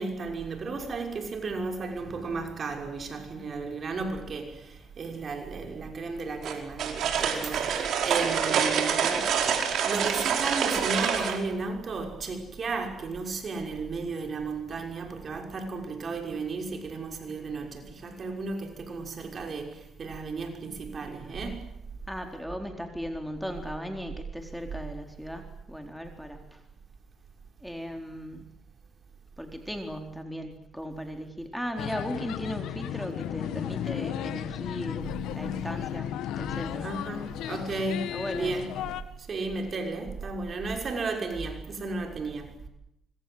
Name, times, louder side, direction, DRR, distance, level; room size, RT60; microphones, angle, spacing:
voice 1, 0.0-9.2 9.8-21.7 36.8-38.7 39.3-42.6, right 3 dB, 45° right, 6.0 m, -34 dB
sound 1, 6.4-11.4, right 7 dB, 75° right, 5.0 m, -26 dB
voice 2, 8.5-9.4 22.1-26.4 27.6-28.5 29.4-36.1 36.4-36.9 38.1-38.5, equal, ahead, 4.1 m, -37 dB
sound 2, 31.8-39.0, left 11 dB, 90° left, 1.7 m, -34 dB
25.0 x 25.0 x 8.1 m
cardioid pair, 90°, 0 cm